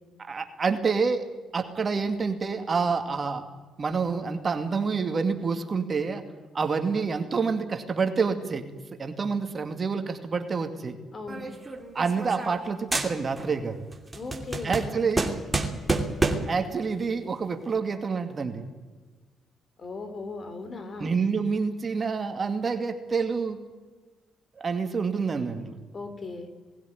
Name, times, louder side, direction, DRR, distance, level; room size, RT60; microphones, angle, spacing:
voice 1, 0.2-1.2 1.5-3.5 3.8-6.2 6.5-8.7 9.0-11.0 11.9-13.8 14.6-15.4 16.5-18.7 21.0-23.6 24.6-25.8, right 5 dB, 40° right, 6 dB, 2.3 m, -27 dB
voice 2, 11.1-11.5 14.1-15.0 19.8-21.1 25.9-26.5, left 3 dB, 40° left, 9 dB, 3.5 m, -38 dB
sound 1, 11.3-12.7 12.9-13.6 13.9-16.6, right 2 dB, 20° right, 2.9 m, -29 dB
20.0 x 16.0 x 9.4 m, 1.3 s
cardioid pair, 90°, 0 cm